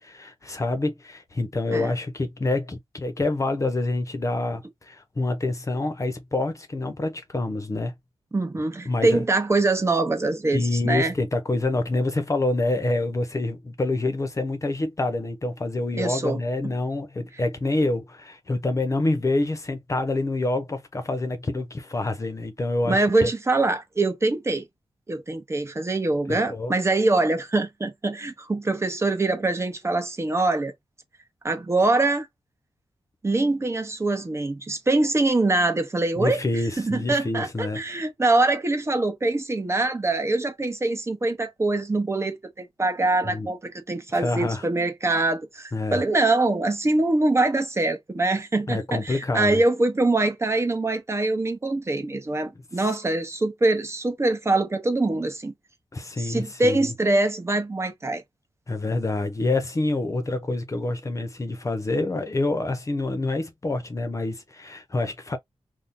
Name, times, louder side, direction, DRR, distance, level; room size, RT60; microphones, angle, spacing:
voice 1, 0.0-7.9 8.9-9.2 10.5-23.3 26.3-26.7 36.2-37.8 43.2-43.5 44.1-44.7 45.7-46.0 48.7-49.6 55.9-56.9 58.7-65.4, left 2 dB, 30° left, 0.8 m, -27 dB
voice 2, 8.3-11.1 16.0-16.4 16.6-16.7 22.9-24.6 25.1-30.7 31.4-32.3 33.2-36.4 36.8-55.5 56.2-58.2, right 2 dB, 25° right, 0.8 m, -24 dB
2.8 x 2.3 x 3.6 m
wide cardioid pair, 95°, 10 cm